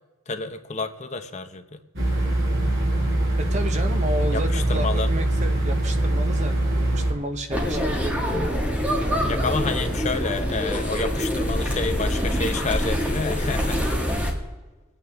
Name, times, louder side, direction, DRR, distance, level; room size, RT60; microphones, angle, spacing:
voice 1, 0.3-1.8 4.3-5.1 9.3-14.2, left 3 dB, 30° left, 7 dB, 0.8 m, -29 dB
sound 1, 2.0-7.1, right 1 dB, 50° right, 5.3 m, -23 dB
voice 2, 3.4-8.5, right 1 dB, 30° right, 7 dB, 0.8 m, -32 dB
sound 2, 7.5-14.3, equal, 5° right, 1.9 m, -25 dB
24.0 x 9.0 x 3.5 m, 1.2 s
head